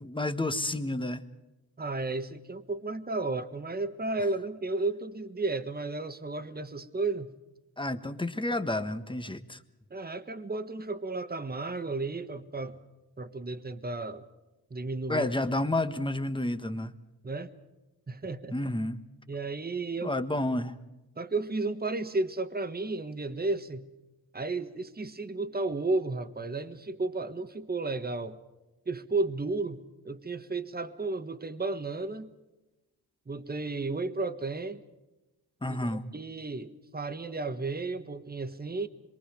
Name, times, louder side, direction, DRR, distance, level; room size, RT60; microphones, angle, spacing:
voice 1, 0.0-1.2 7.8-9.6 15.1-16.9 18.5-19.0 20.0-20.7 35.6-36.0, left 1 dB, 10° left, 9 dB, 1.4 m, -30 dB
voice 2, 1.8-7.3 9.9-12.8 13.2-14.2 14.7-15.3 17.2-17.5 18.1-18.6 19.3-20.1 21.2-23.9 24.3-28.4 28.9-32.3 33.3-34.8 35.7-38.9, right 3 dB, 25° right, 9 dB, 1.4 m, -33 dB
26.0 x 23.0 x 5.2 m, 1.0 s
cardioid pair, 75°, 40 cm